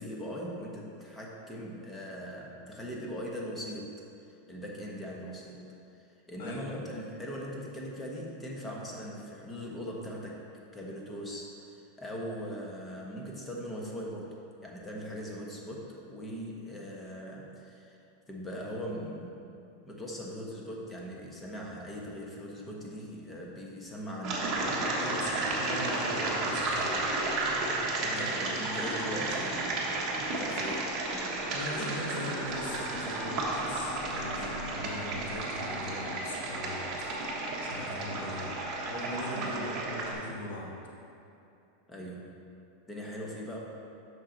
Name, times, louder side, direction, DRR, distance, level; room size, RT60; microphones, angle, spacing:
voice 1, 0.0-3.9 4.5-5.6 6.3-10.4 10.7-18.0 18.3-19.4 19.8-24.5 28.0-29.9 30.2-30.9 39.3-39.7 41.9-42.3 42.9-43.6, equal, 10° left, -2 dB, 1.0 m, -40 dB
voice 2, 6.4-6.7 24.9-27.0 28.2-28.6 31.5-36.8 37.6-38.5 38.9-40.7, left 1 dB, 85° left, -3 dB, 1.8 m, -40 dB
sound 1, 24.2-40.1, right 2 dB, 30° right, 1.2 m, -32 dB
7.3 x 6.1 x 3.9 m, 2.7 s
supercardioid pair, 155°, 0 cm